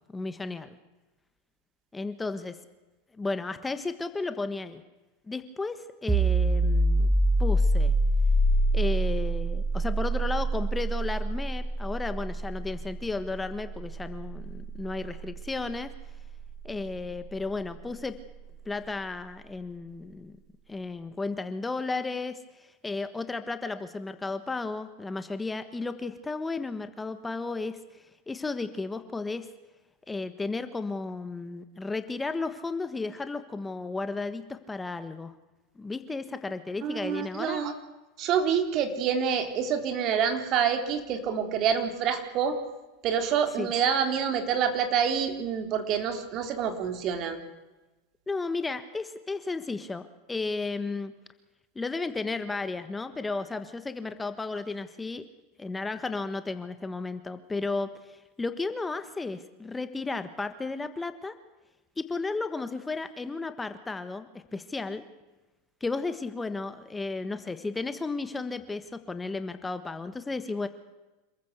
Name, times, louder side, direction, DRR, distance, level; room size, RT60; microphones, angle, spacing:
voice 1, 0.1-0.7 1.9-2.6 3.1-4.8 5.3-7.1 7.4-7.9 8.7-15.9 16.6-18.1 18.6-20.4 20.7-29.5 30.1-35.3 35.8-37.6 43.6-43.7 48.3-51.1 51.7-55.2 55.6-61.3 62.0-65.0 65.8-70.7, left 3 dB, 15° left, 11 dB, 1.4 m, -34 dB
sound 1, 6.1-17.5, right 1 dB, 10° right, 2.0 m, -27 dB
voice 2, 36.8-37.7 38.2-42.6 43.0-47.4, right 7 dB, 50° right, 7 dB, 3.7 m, -27 dB
27.0 x 14.5 x 8.1 m, 1.1 s
hypercardioid pair, 100°, 0 cm